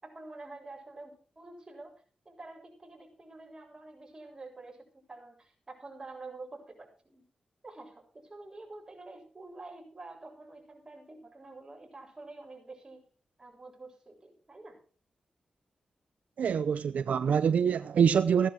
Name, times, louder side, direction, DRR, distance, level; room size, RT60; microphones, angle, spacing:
voice 1, 0.0-2.0 2.3-7.2 7.6-13.0 13.4-14.8, right 2 dB, 25° right, 7.4 m, -48 dB
voice 2, 16.4-18.5, right 7 dB, 80° right, 0.6 m, -25 dB
16.5 x 11.5 x 4.7 m
cardioid pair, 80°, 2 cm